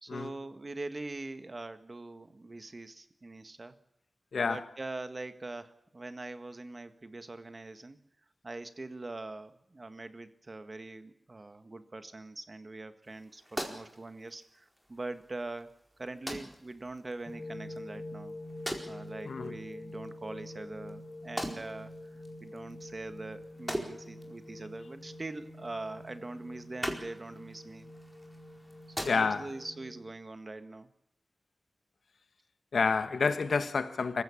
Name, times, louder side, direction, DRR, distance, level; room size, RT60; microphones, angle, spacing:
voice 1, 0.0-3.7 4.4-8.0 8.4-15.7 16.0-18.3 18.9-21.9 22.4-27.9 29.0-30.9, right 2 dB, 40° right, 1.7 m, -43 dB
voice 2, 4.3-4.6 19.2-19.5 29.0-29.5 32.7-34.2, left 5 dB, 90° left, 1.4 m, -29 dB
sound 1, 13.0-29.7, equal, ahead, 4.5 m, -44 dB
sound 2, 17.3-30.1, left 1 dB, 25° left, 2.0 m, -46 dB
26.0 x 15.5 x 8.5 m
wide cardioid pair, 85°, 0 cm